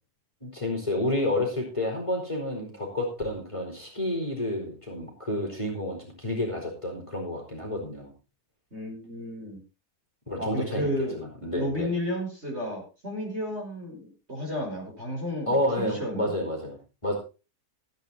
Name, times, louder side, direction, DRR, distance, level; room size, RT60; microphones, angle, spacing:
voice 1, 0.4-8.1 10.3-11.9 15.5-17.2, left 1 dB, 15° left, 0 dB, 4.3 m, -30 dB
voice 2, 8.7-9.6 10.4-11.2 11.5-16.3, equal, 35° right, 0 dB, 5.5 m, -32 dB
16.0 x 9.2 x 4.2 m, 0.31 s
omnidirectional pair, 1.9 m